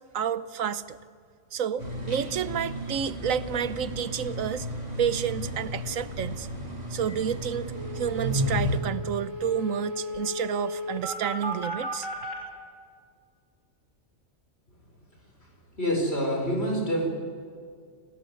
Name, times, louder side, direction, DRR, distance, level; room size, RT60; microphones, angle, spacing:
voice 1, 0.1-1.0 1.5-4.7 5.0-6.5 6.9-12.1, right 8 dB, 90° right, 14 dB, 1.3 m, -30 dB
sound 1, 1.8-8.8, equal, 30° right, 3.6 m, -33 dB
sound 2, 7.1-7.2 7.4-7.5 7.8-12.3, equal, 70° right, 6.0 m, -35 dB
voice 2, 15.8-17.1, equal, 50° left, 2 dB, 5.7 m, -26 dB
28.0 x 17.5 x 9.6 m, 2.1 s
omnidirectional pair, 1.4 m